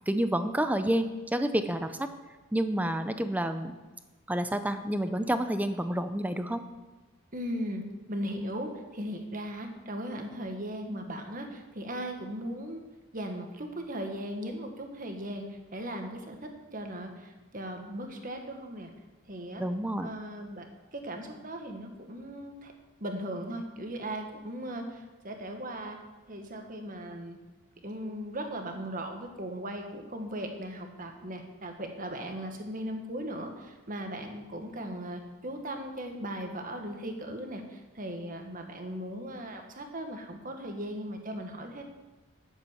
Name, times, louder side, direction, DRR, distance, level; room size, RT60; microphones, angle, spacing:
voice 1, 0.1-2.1 2.5-3.8 4.3-6.6 19.6-20.2, right 1 dB, 5° right, 9 dB, 0.5 m, -29 dB
voice 2, 7.3-7.8 8.1-12.8 13.1-18.9 19.3-19.6 20.0-20.7 20.9-22.7 23.0-26.0 26.3-27.4 27.8-41.8, equal, 40° right, 4 dB, 1.4 m, -38 dB
11.0 x 7.3 x 7.2 m, 1.2 s
head